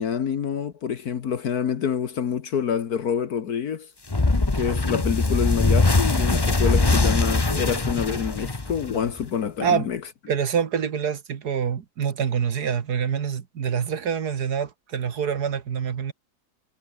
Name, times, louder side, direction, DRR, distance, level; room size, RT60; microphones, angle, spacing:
voice 1, 0.0-3.9 4.5-10.0, left 7 dB, 60° left, 1.7 m, -27 dB
sound 1, 4.1-9.2, left 3 dB, 15° left, 1.0 m, -22 dB
voice 2, 10.3-16.1, right 7 dB, 65° right, 1.9 m, -26 dB
omnidirectional pair, 1.9 m